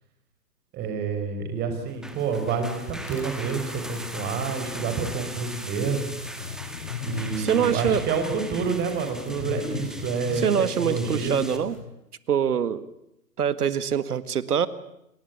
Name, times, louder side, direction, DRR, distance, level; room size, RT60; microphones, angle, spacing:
voice 1, 0.7-6.1 7.0-11.4, right 5 dB, 20° right, 7 dB, 5.1 m, -28 dB
sound 1, 1.9-11.8, left 7 dB, 55° left, 7.2 m, -39 dB
sound 2, 1.9-11.6, right 1 dB, ahead, 1.8 m, -40 dB
voice 2, 7.4-8.0 9.3-9.6 10.3-11.8 12.3-12.9 13.4-14.7, right 8 dB, 65° right, 15 dB, 2.0 m, -24 dB
29.5 x 20.0 x 9.6 m, 0.84 s
hypercardioid pair, 135°, 49 cm